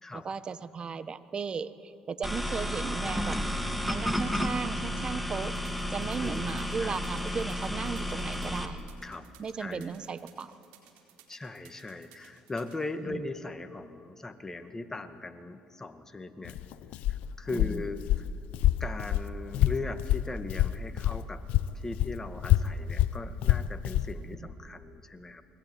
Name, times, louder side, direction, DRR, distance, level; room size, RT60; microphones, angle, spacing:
voice 1, 0.1-3.4 3.9-5.6 5.9-8.8 9.4-10.5 13.0-13.2 17.5-17.8 24.2-24.5, right 5 dB, 40° right, 13 dB, 1.4 m, -36 dB
sound 1, 2.2-8.7, equal, ahead, 3.0 m, -32 dB
sound 2, 5.4-12.8, right 12 dB, 85° right, 4.3 m, -57 dB
voice 2, 6.2-7.4 9.0-9.3 9.6-9.9 11.3-16.6 17.1-18.3 18.8-21.4 21.7-25.4, left 3 dB, 20° left, 8 dB, 2.1 m, -39 dB
Walk footsteps, 16.4-21.2 21.5-24.1, left 13 dB, 75° left, 0.9 m, -27 dB
28.0 x 21.0 x 9.7 m, 2.5 s
supercardioid pair, 70°, 2 cm